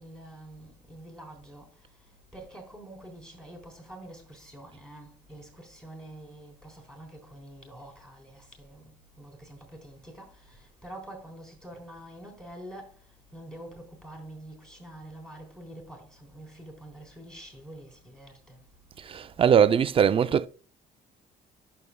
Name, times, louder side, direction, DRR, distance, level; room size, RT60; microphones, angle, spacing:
voice 1, 0.0-1.7 2.3-12.9 13.3-18.6, right 1 dB, 5° left, 3.8 m, -46 dB
voice 2, 19.0-20.5, right 8 dB, 35° right, 0.4 m, -21 dB
11.0 x 7.0 x 2.2 m
cardioid pair, 110°, 17 cm